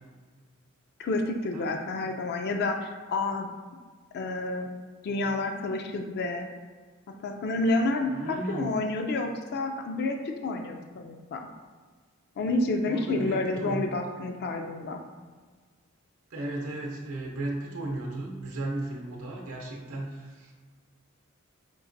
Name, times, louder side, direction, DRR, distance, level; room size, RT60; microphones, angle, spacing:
voice 1, 1.0-3.5 4.1-4.7 5.0-6.5 7.1-11.5 12.4-15.0, left 2 dB, 50° left, 4 dB, 0.4 m, -29 dB
voice 2, 8.1-8.7 12.8-13.8 16.3-20.5, right 2 dB, 90° right, -1 dB, 0.7 m, -35 dB
5.2 x 2.8 x 2.6 m, 1.5 s
head